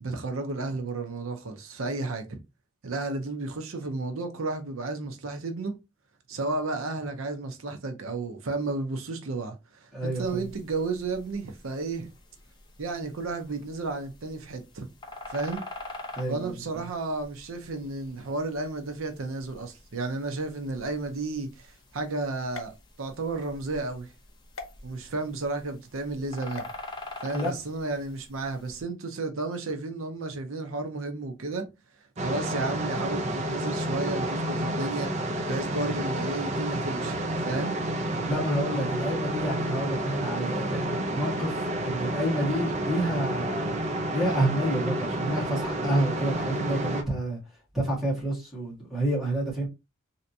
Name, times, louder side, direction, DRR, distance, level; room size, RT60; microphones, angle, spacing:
voice 1, 0.0-2.4 2.8-5.7 6.3-12.1 12.8-14.9 15.3-15.6 16.3-24.1 24.8-26.7 27.2-31.7 31.9-35.1 35.5-37.8, right 3 dB, 80° right, 0.7 m, -32 dB
voice 2, 9.9-10.4 16.1-16.5 27.3-27.5 38.3-41.5 41.8-47.4 47.7-49.7, right 1 dB, ahead, 1.6 m, -29 dB
sound 1, 10.1-28.8, left 2 dB, 20° left, 0.6 m, -46 dB
sound 2, 22.5-23.5 24.5-24.7 26.5-26.8, left 4 dB, 80° left, 0.7 m, -42 dB
sound 3, 32.2-47.0, right 1 dB, 35° right, 0.5 m, -30 dB
3.4 x 2.8 x 2.7 m
head